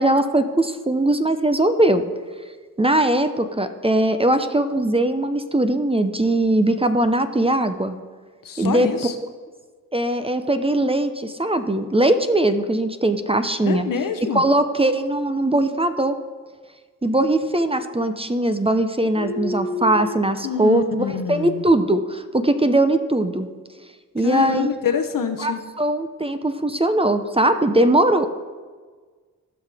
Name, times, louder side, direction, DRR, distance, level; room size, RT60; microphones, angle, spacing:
voice 1, 0.0-2.0 2.8-8.0 8.6-8.9 9.9-13.9 14.3-16.2 17.0-23.5 24.1-24.7 25.4-28.3, right 1 dB, 15° right, 9 dB, 0.7 m, -20 dB
voice 2, 8.5-9.1 13.7-14.4 19.2-20.2 20.4-21.6 24.2-25.6, left 6 dB, 65° left, 8 dB, 0.9 m, -26 dB
15.5 x 5.7 x 3.5 m, 1.5 s
cardioid pair, 50°, 35 cm